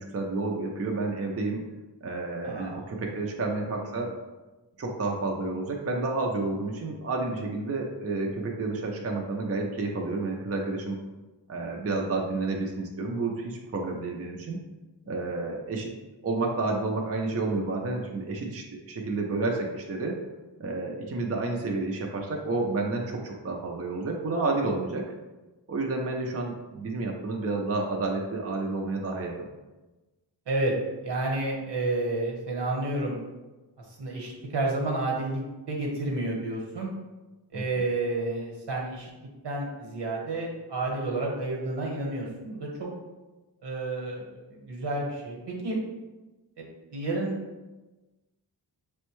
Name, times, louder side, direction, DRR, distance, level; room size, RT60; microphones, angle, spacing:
voice 1, 0.0-1.6 2.0-4.1 4.8-11.0 11.5-14.6 15.1-15.9 16.2-20.2 20.6-25.1 25.7-29.5 37.5-37.8, right 3 dB, 35° right, 0 dB, 0.5 m, -30 dB
voice 2, 2.4-3.2 3.9-4.0 11.9-12.0 30.5-30.7 31.0-33.2 34.0-35.4 35.7-36.9 37.5-39.1 39.4-42.9 43.6-44.2 44.5-45.8 46.9-47.3, right 2 dB, 80° right, -1 dB, 1.1 m, -30 dB
6.0 x 2.1 x 3.0 m, 1.1 s
wide cardioid pair, 130°, 41 cm